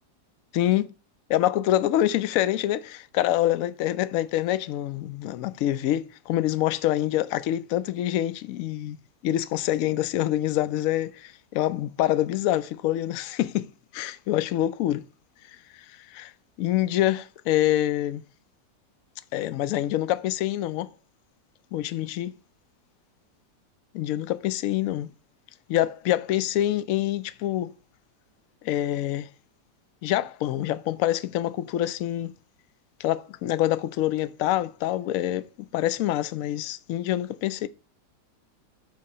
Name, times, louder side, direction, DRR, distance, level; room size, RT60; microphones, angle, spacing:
voice 1, 0.5-0.9 1.3-9.0 9.2-13.7 13.9-15.0 16.1-16.3 16.6-18.2 19.3-20.9 21.7-22.3 23.9-25.1 25.7-27.7 28.6-29.3 30.0-32.3 33.0-35.5 35.7-37.7, left 13 dB, 70° left, 0.8 m, -26 dB
8.3 x 2.9 x 5.3 m
omnidirectional pair, 1.8 m